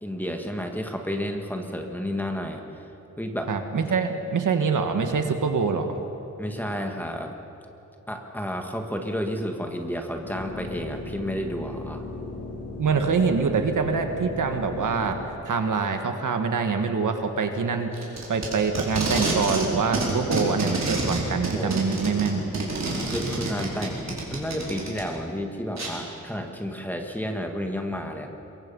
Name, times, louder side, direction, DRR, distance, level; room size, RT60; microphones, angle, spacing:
voice 1, 0.0-2.8 3.2-3.5 6.4-7.3 8.1-12.0 21.5-21.8 23.0-28.3, equal, 5° left, 3 dB, 1.6 m, -31 dB
voice 2, 3.5-6.0 12.8-15.2 15.5-17.9 18.3-22.5, right 5 dB, 85° right, 5 dB, 1.8 m, -25 dB
sound 1, 10.2-15.2, left 2 dB, 70° left, 4.9 m, -37 dB
Packing tape duct tape, 17.9-19.7 19.9-25.0 25.8-25.9, right 3 dB, 60° right, 4.6 m, -28 dB
23.0 x 22.5 x 5.6 m, 2.9 s
wide cardioid pair, 175°, 30 cm